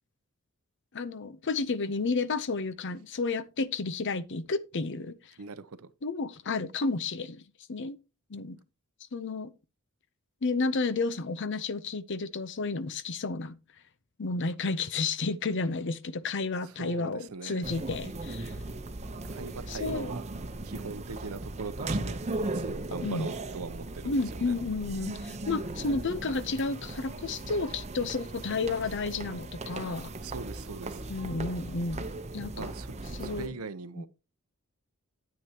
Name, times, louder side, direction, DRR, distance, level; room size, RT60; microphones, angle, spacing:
voice 1, 0.9-5.3 6.0-7.4 7.7-8.0 8.3-8.6 9.1-9.5 10.4-13.6 14.2-18.5 19.7-20.1 23.0-23.3 24.0-30.1 31.1-32.1 32.3-32.7 33.1-33.6 34.0-34.1, left 3 dB, 55° left, 0.7 m, -31 dB
voice 2, 5.4-5.9 16.8-17.6 19.2-20.3 20.6-22.2 22.5-24.5 30.2-31.0 32.6-32.9 33.2-34.1, right 4 dB, 75° right, 0.7 m, -40 dB
sound 1, 17.6-33.5, right 2 dB, 30° right, 0.8 m, -37 dB
9.4 x 8.5 x 2.9 m
head